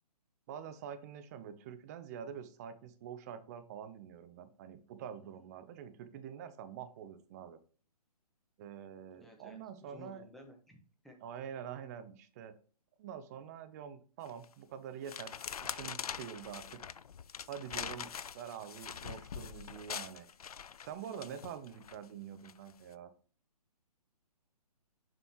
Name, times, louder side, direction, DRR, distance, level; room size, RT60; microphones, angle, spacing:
voice 1, 0.5-7.6 8.6-10.2 11.2-12.5 13.0-16.9 17.5-20.3 20.8-23.1, right 8 dB, 25° right, 10 dB, 0.6 m, -46 dB
voice 2, 5.1-5.5 9.2-10.8 11.0-11.2, left 1 dB, ahead, 1 dB, 1.0 m, -56 dB
sound 1, 14.2-14.5 15.0-22.0 22.4-22.7, left 7 dB, 65° left, 0.4 m, -43 dB
7.2 x 5.4 x 3.0 m, 0.39 s
figure-of-eight pair, 130°, 20 cm